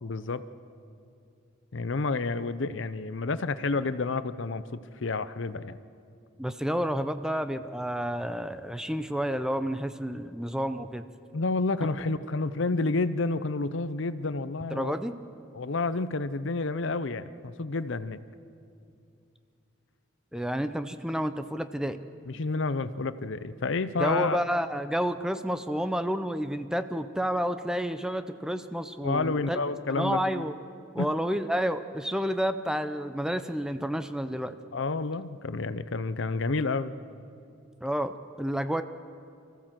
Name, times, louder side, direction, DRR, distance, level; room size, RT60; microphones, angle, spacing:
voice 1, 0.0-0.4 1.7-5.8 11.3-14.9 15.5-18.2 22.3-24.4 29.0-30.5 31.0-31.2 34.7-36.9, left 3 dB, 65° left, 14 dB, 0.7 m, -30 dB
voice 2, 6.4-11.0 14.7-15.1 20.3-22.0 24.0-29.6 29.9-30.5 30.9-34.5 37.8-38.1 38.4-38.8, equal, 5° right, 10 dB, 0.5 m, -30 dB
24.5 x 15.0 x 7.6 m, 2.5 s
head